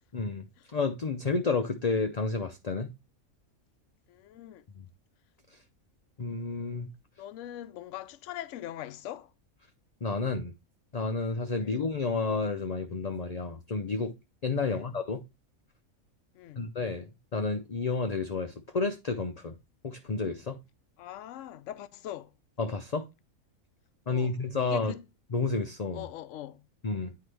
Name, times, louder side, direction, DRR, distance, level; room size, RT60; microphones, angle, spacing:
voice 1, 0.1-0.5 0.7-2.9 6.2-6.9 10.0-10.5 10.9-14.1 14.4-15.2 16.6-19.5 19.8-20.6 22.6-23.0 24.1-24.9 25.3-26.0 26.8-27.1, left 4 dB, 45° left, 0.5 m, -30 dB
voice 2, 4.1-4.6 7.2-9.3 11.5-11.8 14.6-14.9 16.3-16.7 21.0-22.3 24.1-25.0 25.9-26.7, left 12 dB, 65° left, 0.9 m, -42 dB
9.5 x 4.7 x 3.3 m
omnidirectional pair, 1.5 m